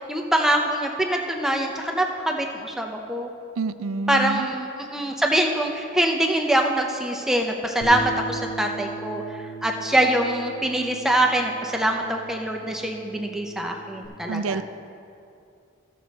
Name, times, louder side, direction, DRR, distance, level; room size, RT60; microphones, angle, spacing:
voice 1, 0.1-3.3 4.1-9.2 9.6-14.6, right 1 dB, ahead, 1 dB, 0.6 m, -24 dB
voice 2, 3.6-4.5 14.3-14.6, right 4 dB, 85° right, 13 dB, 0.4 m, -27 dB
Bass guitar, 7.8-14.1, right 3 dB, 80° left, 1.5 m, -38 dB
15.5 x 6.4 x 4.1 m, 2.6 s
head